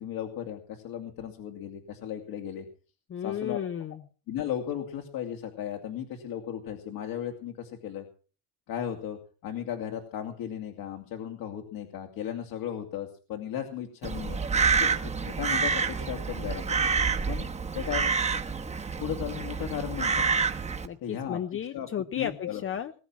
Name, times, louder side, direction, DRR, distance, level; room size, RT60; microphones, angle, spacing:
voice 1, 0.0-2.7 3.2-3.6 4.3-8.0 8.7-14.4 14.7-16.8 17.3-18.1 19.0-20.2 21.0-21.4 21.7-21.9 22.1-22.6, left 10 dB, 65° left, 3 dB, 2.6 m, -36 dB
voice 2, 3.1-4.0 20.8-22.9, left 9 dB, 35° left, 10 dB, 0.9 m, -33 dB
Crow, 14.0-20.9, right 5 dB, 20° right, 1.2 m, -28 dB
20.5 x 9.1 x 6.0 m, 0.38 s
cardioid pair, 135°, 38 cm